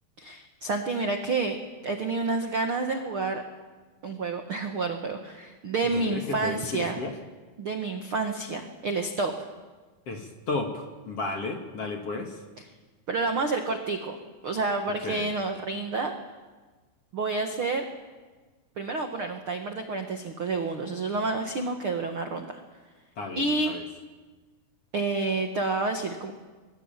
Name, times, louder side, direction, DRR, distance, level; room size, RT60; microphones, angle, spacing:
voice 1, 0.2-1.6 1.8-3.4 4.0-7.0 7.6-9.3 13.1-14.2 14.4-16.1 17.1-17.9 18.8-22.6 23.3-23.7 24.9-26.3, right 3 dB, 65° right, 5 dB, 1.3 m, -29 dB
voice 2, 5.9-7.1 10.1-12.4 15.0-15.3 23.2-23.8, left 3 dB, 45° left, 3 dB, 2.3 m, -33 dB
24.0 x 23.5 x 9.1 m, 1.3 s
omnidirectional pair, 5.0 m